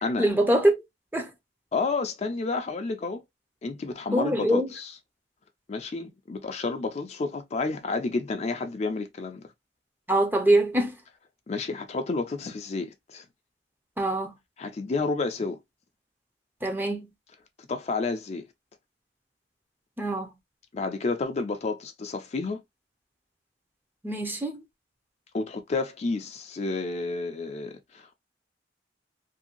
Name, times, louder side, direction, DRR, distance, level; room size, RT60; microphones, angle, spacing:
voice 1, 0.2-0.7 1.1-1.3 4.1-4.7 10.1-10.9 14.0-14.3 16.6-17.1 20.0-20.3 24.0-24.6, right 1 dB, 10° right, 0.6 m, -23 dB
voice 2, 1.7-3.2 3.6-5.0 5.7-9.5 11.5-13.3 14.6-15.6 17.7-18.5 20.7-22.6 25.3-28.2, left 3 dB, 35° left, 0.4 m, -30 dB
2.7 x 2.6 x 2.8 m
head